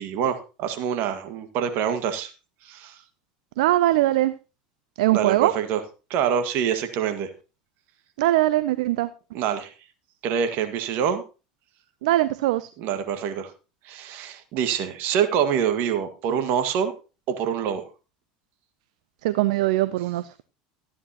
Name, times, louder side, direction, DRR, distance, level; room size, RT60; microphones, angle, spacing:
voice 1, 0.0-2.3 2.7-3.0 5.1-5.8 6.1-7.3 9.3-9.7 10.2-11.2 12.8-13.5 13.9-16.9 17.3-17.8, right 8 dB, 60° right, 1.8 m, -25 dB
voice 2, 3.6-4.3 5.0-5.5 8.2-9.1 12.0-12.7 19.2-20.3, right 16 dB, 75° right, 0.5 m, -21 dB
14.0 x 9.5 x 2.9 m
hypercardioid pair, 85°, 4 cm